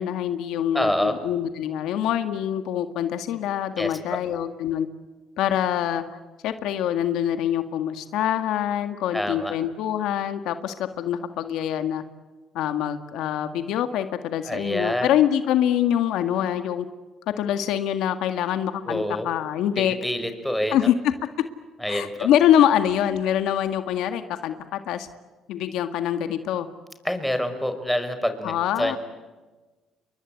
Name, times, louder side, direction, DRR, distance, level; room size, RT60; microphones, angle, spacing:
voice 1, 0.0-4.9 5.4-12.0 12.5-16.9 17.4-20.0 20.7-20.9 21.9-25.1 25.5-26.7 28.4-29.0, left 10 dB, 80° left, 9 dB, 1.8 m, -25 dB
voice 2, 0.7-1.2 3.8-4.2 9.1-9.5 14.4-15.1 18.9-19.3 19.8-20.8 21.8-22.3 27.0-29.0, left 1 dB, 5° left, 8 dB, 5.2 m, -27 dB
30.0 x 23.0 x 8.5 m, 1.3 s
cardioid pair, 85°, 0 cm